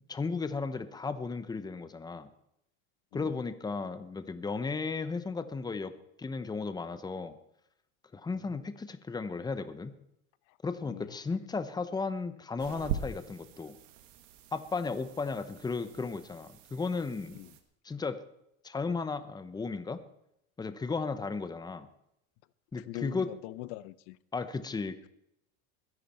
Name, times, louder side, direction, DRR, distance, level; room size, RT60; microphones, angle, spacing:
voice 1, 0.1-2.3 3.1-5.9 6.2-7.4 8.1-10.0 10.6-13.7 14.5-17.4 17.8-18.2 18.6-20.0 20.6-21.9 22.7-23.3 24.3-25.1, left 4 dB, 10° left, 11 dB, 0.9 m, -35 dB
voice 2, 8.3-8.6 10.5-10.6 10.8-11.4 17.3-17.6 22.8-24.2, left 17 dB, 70° left, 17 dB, 0.8 m, -43 dB
sound 1, 12.6-17.6, right 8 dB, 90° right, 1.9 m, -42 dB
21.5 x 11.0 x 4.4 m, 0.79 s
supercardioid pair, 135°, 37 cm